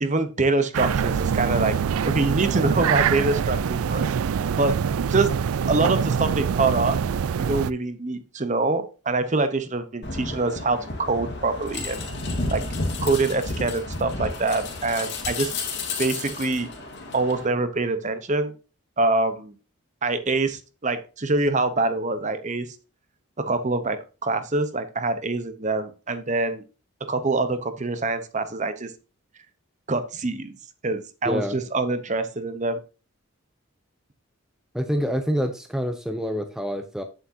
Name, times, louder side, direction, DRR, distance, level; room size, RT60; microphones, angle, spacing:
voice 1, 0.0-1.7 2.0-4.1 4.6-4.8 5.1-5.3 5.7-7.0 7.4-12.0 12.5-12.7 13.0-15.5 16.0-16.7 17.1-18.5 19.0-19.5 20.0-22.7 23.4-26.6 27.0-28.9 29.9-30.6 30.8-32.8, right 3 dB, 35° right, 11 dB, 0.8 m, -25 dB
sound 1, 0.7-7.7, right 7 dB, 85° right, 0.4 m, -24 dB
sound 2, 10.0-17.5, left 3 dB, 50° left, 2.1 m, -31 dB
voice 2, 31.2-31.6 34.7-37.0, equal, 5° right, 6 dB, 0.6 m, -26 dB
8.5 x 7.6 x 2.7 m, 0.33 s
head